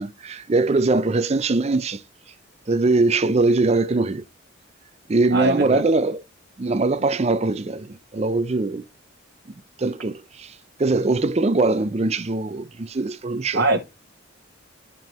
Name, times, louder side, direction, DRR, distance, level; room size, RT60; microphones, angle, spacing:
voice 1, 0.0-2.0 2.7-4.2 5.1-6.2 6.6-8.8 9.8-10.5 10.8-13.6, right 3 dB, 30° right, 0.4 m, -21 dB
voice 2, 5.3-5.8 13.5-13.8, right 2 dB, 60° right, 1.1 m, -21 dB
12.5 x 4.5 x 3.0 m
head